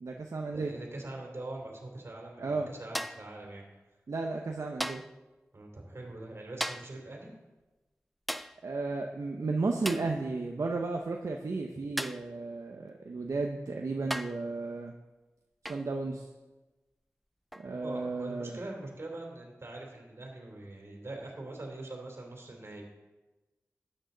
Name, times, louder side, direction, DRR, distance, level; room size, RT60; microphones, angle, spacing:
voice 1, 0.0-0.7 2.4-2.7 4.1-5.0 8.6-14.9 15.6-16.3 17.6-18.6, right 3 dB, 75° right, 2 dB, 0.8 m, -34 dB
voice 2, 0.5-3.6 5.5-7.3 17.6-22.8, right 2 dB, 55° right, 0 dB, 3.2 m, -43 dB
sound 1, 2.9-3.3 4.8-5.2 6.6-7.0 8.3-8.6 9.8-10.2 12.0-12.3 13.4-13.5 14.1-14.5 15.6-15.9 17.5-17.7, equal, ahead, 0.3 m, -36 dB
12.5 x 9.0 x 4.0 m, 1.1 s
wide cardioid pair, 65°, 5 cm